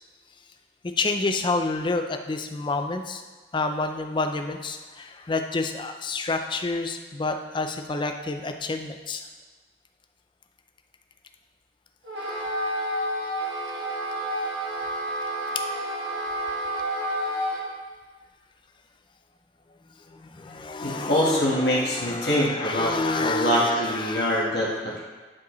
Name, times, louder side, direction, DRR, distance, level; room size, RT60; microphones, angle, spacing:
voice 1, 1.0-3.2 3.5-9.2 15.5-15.6 20.1-24.4, left 3 dB, 25° left, 5 dB, 0.5 m, -29 dB
Wind instrument woodwind instrument, 12.0-17.7, right 1 dB, 60° right, 1.6 m, -29 dB
voice 2, 20.8-22.9 23.2-25.0, equal, 65° left, -6 dB, 1.5 m, -24 dB
11.0 x 4.8 x 3.1 m, 1.3 s
head